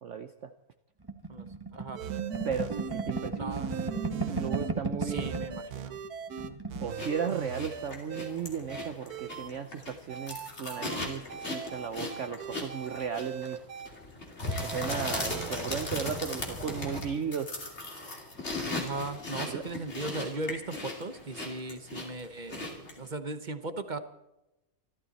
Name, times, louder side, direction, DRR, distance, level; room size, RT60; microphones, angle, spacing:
voice 1, 0.0-0.5 2.4-3.5 4.1-5.3 6.8-13.6 14.6-17.5 19.5-19.6, right 7 dB, 55° right, 8 dB, 1.0 m, -35 dB
sound 1, 1.1-5.6 5.9-6.1 6.3-6.9, right 3 dB, 15° right, 1.6 m, -34 dB
voice 2, 1.3-2.0 3.3-3.8 5.0-6.0 6.4-6.6 18.7-24.0, right 2 dB, 35° right, 10 dB, 1.1 m, -38 dB
sound 2, 2.0-4.7 5.1-8.3 8.7-9.5 10.1-13.9 14.5-15.8, right 7 dB, 80° right, 1.5 m, -39 dB
sound 3, 7.0-23.1, left 2 dB, 45° left, 3.1 m, -38 dB
26.5 x 12.5 x 4.1 m, 0.92 s
omnidirectional pair, 1.6 m